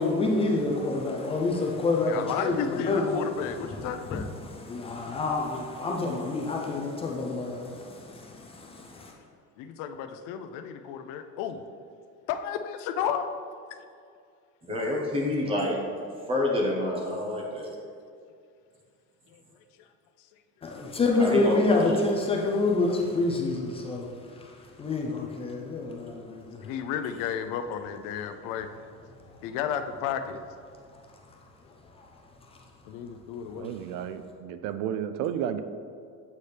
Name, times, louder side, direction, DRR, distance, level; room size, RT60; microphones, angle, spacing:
voice 1, 0.0-3.2 3.7-4.2 4.6-9.1 20.6-24.1 24.4-24.5 24.8-26.6 32.0-32.1, left 3 dB, 20° left, -1 dB, 0.4 m, -28 dB
voice 2, 2.1-4.3 9.6-11.6 12.3-13.3 19.3-19.4 19.8-19.9 26.6-28.7 29.4-30.4 32.9-33.7, left 8 dB, 85° left, 8 dB, 0.5 m, -33 dB
voice 3, 14.6-15.8 16.3-17.7 21.2-22.0, left 1 dB, 15° right, -2 dB, 0.9 m, -28 dB
voice 4, 33.6-35.6, right 9 dB, 80° right, 10 dB, 0.5 m, -32 dB
8.2 x 4.2 x 3.3 m, 2.3 s
cardioid pair, 175°, 32 cm